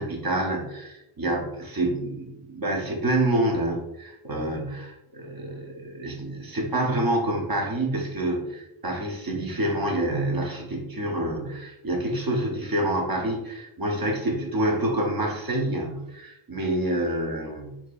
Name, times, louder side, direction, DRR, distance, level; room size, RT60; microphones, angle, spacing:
voice 1, 0.0-17.8, right 1 dB, 45° right, 0 dB, 0.9 m, -27 dB
4.5 x 2.8 x 2.4 m, 0.91 s
wide cardioid pair, 85°, 50 cm